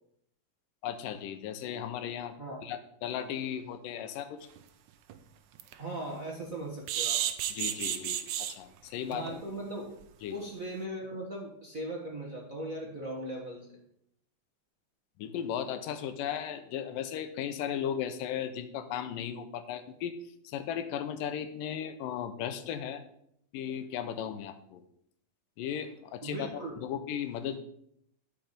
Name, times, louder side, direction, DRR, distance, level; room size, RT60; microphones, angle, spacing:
voice 1, 0.8-2.4 2.6-4.5 7.5-9.4 10.2-10.4 15.2-20.2 20.4-23.0 23.5-24.8 25.6-26.5 26.8-27.6, left 9 dB, 85° left, 10 dB, 2.5 m, -36 dB
sound 1, 4.6-4.7 5.1-5.2 5.6-5.7 6.9-8.5 9.1-9.3 9.6-9.7 10.0-10.1, right 11 dB, 75° right, 2.0 m, -31 dB
voice 2, 5.8-7.3 9.1-10.0 10.3-13.8 26.2-26.8, right 1 dB, 45° right, -2 dB, 1.1 m, -39 dB
12.5 x 5.9 x 5.2 m, 0.74 s
omnidirectional pair, 3.8 m